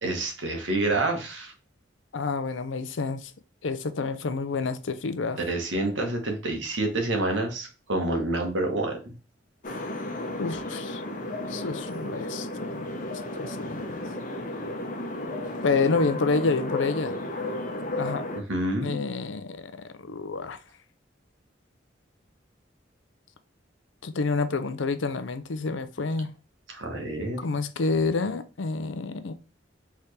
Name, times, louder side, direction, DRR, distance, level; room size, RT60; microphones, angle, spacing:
voice 1, 0.0-1.5 5.4-9.1 18.3-19.0 26.7-27.4, right 2 dB, 85° right, 1.4 m, -28 dB
voice 2, 2.1-3.3 3.6-5.4 10.4-11.0 11.4-12.9 13.4-14.0 15.6-17.2 18.0-18.2 18.8-20.6 24.0-26.3 27.4-29.3, left 4 dB, 90° left, 0.6 m, -28 dB
sound 1, 9.6-18.4, left 1 dB, 45° left, 0.9 m, -33 dB
4.3 x 3.6 x 3.3 m
head